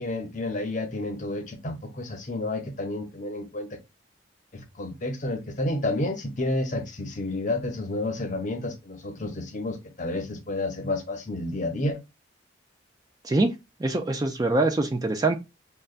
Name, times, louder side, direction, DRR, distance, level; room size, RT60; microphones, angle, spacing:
voice 1, 0.0-3.8 4.5-12.0, left 2 dB, 40° left, 0.7 m, -30 dB
voice 2, 13.8-15.4, right 2 dB, 20° right, 0.3 m, -24 dB
6.4 x 2.2 x 2.4 m
head